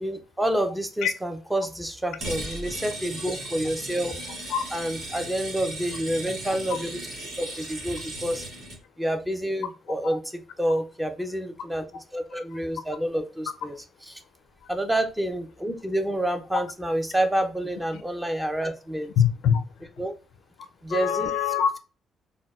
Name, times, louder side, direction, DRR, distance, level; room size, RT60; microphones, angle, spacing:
voice 1, 0.0-4.2 4.7-7.0 7.4-8.5 9.0-11.8 12.1-13.8 14.1-14.2 14.7-19.1 20.0-20.1 20.8-21.3, right 1 dB, 10° right, 0.5 m, -28 dB
sound 1, 2.2-8.8, right 1 dB, 85° right, 1.2 m, -36 dB
voice 2, 19.2-19.9 20.9-21.7, left 8 dB, 80° left, 0.4 m, -24 dB
4.0 x 2.1 x 2.3 m
cardioid pair, 90°, 0 cm